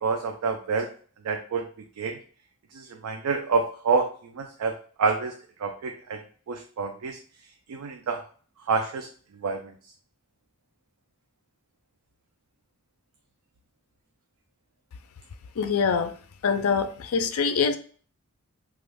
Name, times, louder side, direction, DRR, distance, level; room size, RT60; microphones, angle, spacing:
voice 1, 0.0-0.9 1.2-1.7 2.0-2.2 2.7-5.3 5.6-6.2 6.5-7.2 7.7-8.2 8.7-9.1 9.4-9.7, right 4 dB, 75° right, 4 dB, 0.4 m, -27 dB
voice 2, 15.6-16.1 16.4-17.8, left 5 dB, 70° left, 9 dB, 0.4 m, -24 dB
3.0 x 2.3 x 3.3 m, 0.43 s
head